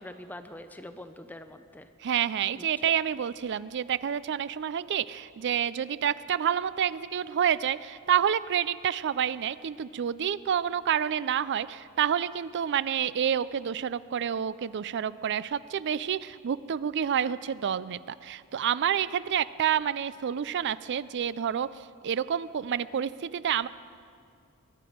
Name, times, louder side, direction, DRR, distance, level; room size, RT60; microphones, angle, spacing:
voice 1, 0.0-1.9 2.5-2.9, left 1 dB, 10° left, 8 dB, 0.5 m, -44 dB
voice 2, 2.0-23.7, right 9 dB, 55° right, 18 dB, 0.4 m, -28 dB
22.0 x 11.0 x 5.1 m, 2.3 s
head